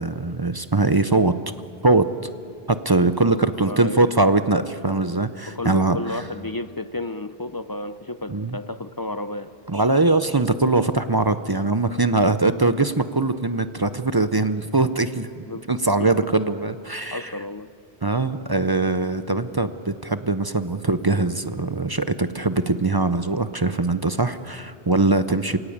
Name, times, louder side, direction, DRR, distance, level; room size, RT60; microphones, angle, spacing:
voice 1, 0.0-1.3 1.8-2.1 2.7-6.0 8.3-8.6 9.7-17.3 18.0-25.6, right 2 dB, 25° right, 11 dB, 0.6 m, -21 dB
voice 2, 3.3-4.1 5.5-9.5 15.5-16.3 17.1-17.7, left 2 dB, 30° left, 11 dB, 0.5 m, -32 dB
27.5 x 18.0 x 8.7 m, 2.5 s
omnidirectional pair, 1.0 m